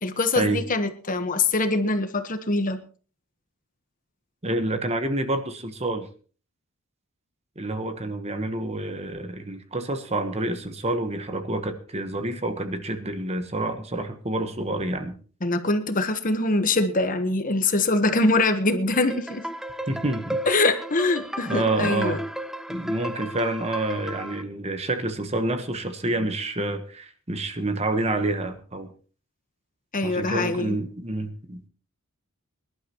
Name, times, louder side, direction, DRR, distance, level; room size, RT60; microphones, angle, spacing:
voice 1, 0.0-2.8 15.4-19.5 20.5-22.2 29.9-30.8, left 2 dB, 35° left, 9 dB, 1.2 m, -23 dB
voice 2, 4.4-6.1 7.6-15.2 19.9-20.4 21.5-22.2 22.7-28.9 30.0-31.7, right 2 dB, 30° right, 8 dB, 1.2 m, -28 dB
sound 1, 18.9-24.4, right 1 dB, ahead, 0.5 m, -34 dB
23.5 x 11.5 x 3.0 m, 0.40 s
head